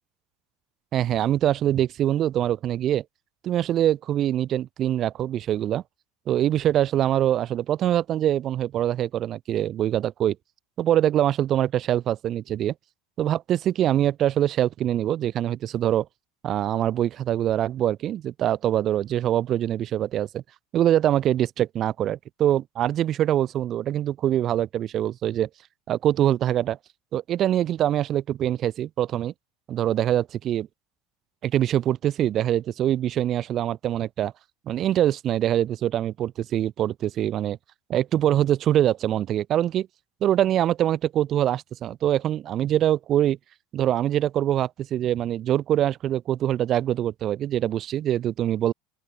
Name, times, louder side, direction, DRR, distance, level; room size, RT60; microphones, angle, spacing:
voice 1, 0.9-3.0 3.4-5.8 6.3-10.4 10.8-12.7 13.2-16.1 16.4-20.4 20.7-25.5 25.9-26.8 27.1-29.3 29.7-30.7 31.4-34.3 34.7-37.6 37.9-39.9 40.2-43.4 43.7-48.7, right 11 dB, 45° right, 3.0 m, -24 dB
open air
supercardioid pair, 105°, 0 cm